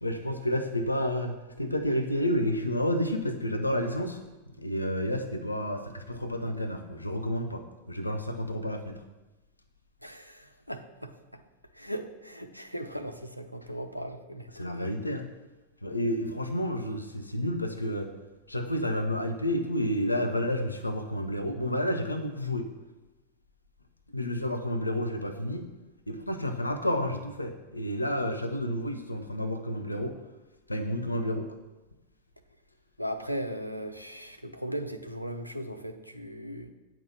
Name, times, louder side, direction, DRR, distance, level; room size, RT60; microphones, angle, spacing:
voice 1, 0.0-4.2 4.6-9.0 14.6-15.3 15.8-18.1 18.5-22.7 24.1-25.7 26.1-30.2 30.7-31.5, equal, 85° left, 6 dB, 0.7 m, -30 dB
voice 2, 10.0-11.4 11.7-14.7 33.0-36.7, equal, 90° right, 7 dB, 0.6 m, -38 dB
9.1 x 5.9 x 5.9 m, 1.1 s
figure-of-eight pair, 90°, 0 cm